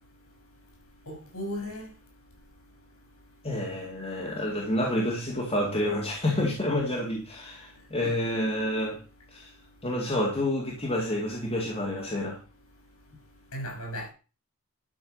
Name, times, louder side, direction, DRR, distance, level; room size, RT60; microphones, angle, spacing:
voice 1, 1.1-1.9 13.5-14.1, equal, 75° left, 6.1 m, -35 dB
voice 2, 3.4-9.0 9.3-9.5 9.8-12.4, left 1 dB, 25° left, 2.1 m, -29 dB
12.0 x 5.1 x 6.4 m
head